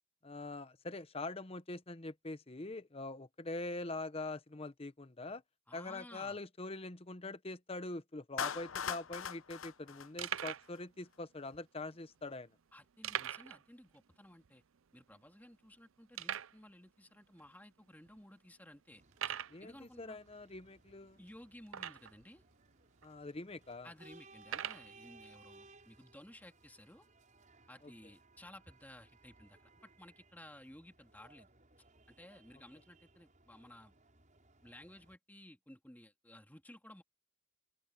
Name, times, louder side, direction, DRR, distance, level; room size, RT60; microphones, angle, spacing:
voice 1, 0.2-5.4 5.7-12.5 19.5-21.2 23.0-23.9, left 2 dB, 30° left, 0.9 m, -44 dB
voice 2, 5.7-6.4 12.7-14.6 14.9-19.0 19.6-20.2 21.2-22.4 23.8-27.1 27.7-31.5 32.1-33.9 34.6-37.0, left 1 dB, 10° left, 2.7 m, -56 dB
Clapping, 8.4-10.8, left 7 dB, 75° left, 0.8 m, -40 dB
sound 1, 8.7-8.8 9.0-9.2 9.7-9.8 10.2-10.7 11.5-11.6 13.0-13.6 13.9-14.0 14.4-14.5 15.1-15.2 16.1-16.6 17.4-17.5 18.1-18.2 19.1-19.6 21.7-22.2 23.0-23.1 24.4-24.9, right 10 dB, 75° right, 0.5 m, -40 dB
sound 2, 18.9-35.2, right 3 dB, 40° right, 6.9 m, -63 dB
open air
head